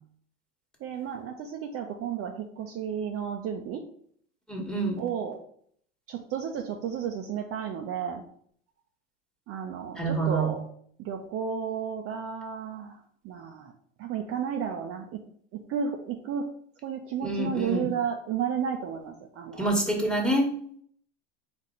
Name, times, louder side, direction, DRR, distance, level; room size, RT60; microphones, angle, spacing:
voice 1, 0.8-3.8 5.0-5.4 6.1-8.2 9.5-10.6 11.0-13.0 13.2-13.7 14.0-15.2 15.5-16.5 16.8-19.7, right 7 dB, 40° right, 3 dB, 0.6 m, -32 dB
voice 2, 4.5-5.0 9.9-10.5 17.2-17.9 19.6-20.4, right 2 dB, ahead, 0 dB, 1.3 m, -27 dB
4.2 x 3.0 x 3.8 m, 0.62 s
hypercardioid pair, 95°, 36 cm